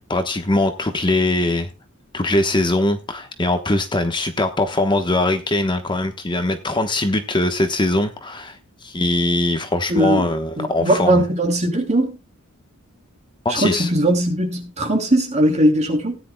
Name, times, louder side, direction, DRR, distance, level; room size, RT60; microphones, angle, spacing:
voice 1, 0.1-1.7 2.1-11.2 13.4-13.9, left 2 dB, 20° left, 1.1 m, -21 dB
voice 2, 9.9-10.3 10.6-12.1 13.5-16.2, right 1 dB, 30° right, 2.8 m, -19 dB
17.5 x 10.0 x 2.3 m
head